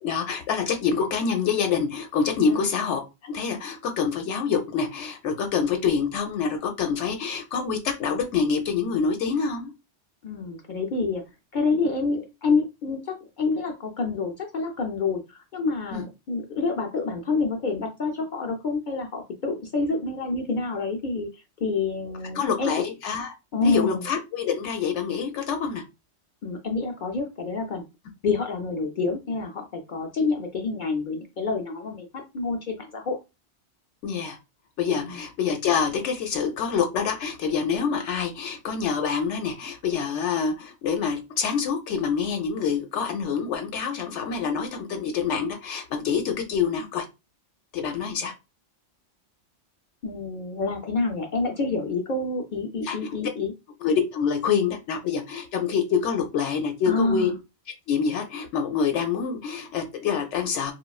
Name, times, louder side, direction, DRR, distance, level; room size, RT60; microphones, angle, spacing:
voice 1, 0.0-9.7 15.9-16.0 22.3-23.3 23.6-25.8 34.0-34.4 34.8-47.0 47.7-48.3 52.8-53.1 53.8-57.3 57.9-60.7, left 6 dB, 80° left, 5 dB, 0.9 m, -26 dB
voice 2, 10.2-11.2 11.5-22.7 23.5-24.0 26.4-27.8 28.2-33.2 35.0-35.1 50.0-53.5 56.9-57.3, left 4 dB, 60° left, 3 dB, 0.5 m, -28 dB
3.1 x 2.3 x 2.3 m, 0.26 s
omnidirectional pair, 1.2 m